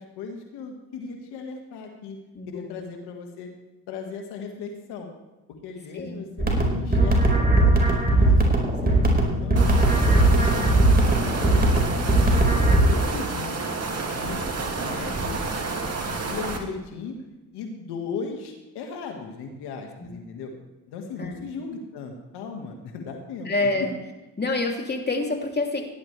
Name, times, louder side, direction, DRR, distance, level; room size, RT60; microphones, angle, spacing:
voice 1, 0.0-2.2 2.5-3.5 3.9-5.1 5.6-11.8 12.1-13.7 14.0-14.4 14.8-15.7 16.1-17.1 17.5-20.5 20.9-23.5, left 5 dB, 90° left, 3 dB, 1.8 m, -37 dB
voice 2, 2.3-2.8 5.9-6.2 20.0-20.2 21.2-21.5 23.4-23.9 24.4-25.8, left 2 dB, 25° left, 1 dB, 2.9 m, -27 dB
sound 1, 6.4-12.8, right 2 dB, 25° right, 4.5 m, -19 dB
sound 2, 9.6-16.6, right 3 dB, 40° right, 2.5 m, -30 dB
17.0 x 11.0 x 3.3 m, 1.1 s
supercardioid pair, 60°, 38 cm